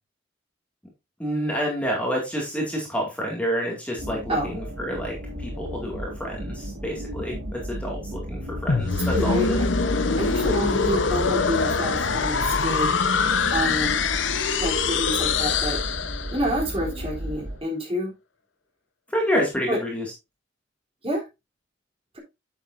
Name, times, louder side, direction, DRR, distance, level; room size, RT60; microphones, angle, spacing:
voice 1, 1.2-9.6 19.1-20.0, equal, 5° left, -1 dB, 2.1 m, -28 dB
sound 1, 4.0-17.6, equal, 80° right, 2.0 m, -34 dB
sound 2, 8.7-16.6, left 5 dB, 80° left, 0.8 m, -24 dB
voice 2, 9.1-9.5 10.2-12.9 13.5-14.0 14.6-15.8 16.3-18.1 19.7-19.8 21.0-21.2, equal, 30° right, -1 dB, 3.4 m, -27 dB
9.1 x 7.0 x 2.6 m, 0.24 s
head